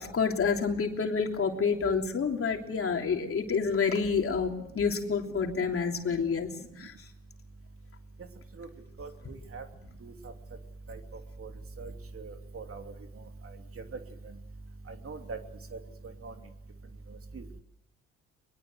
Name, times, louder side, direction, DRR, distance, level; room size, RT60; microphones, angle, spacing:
voice 1, 0.0-6.5 6.8-6.9, left 5 dB, 45° left, 3 dB, 3.3 m, -28 dB
voice 2, 9.0-9.6 10.0-10.1 10.9-11.0 11.4-11.5 11.8-12.8 14.9-15.4 15.7-15.8 16.2-16.3 17.3-17.4, right 4 dB, 45° right, 5 dB, 2.9 m, -41 dB
22.5 x 22.0 x 7.9 m, 0.82 s
cardioid pair, 90°, 30 cm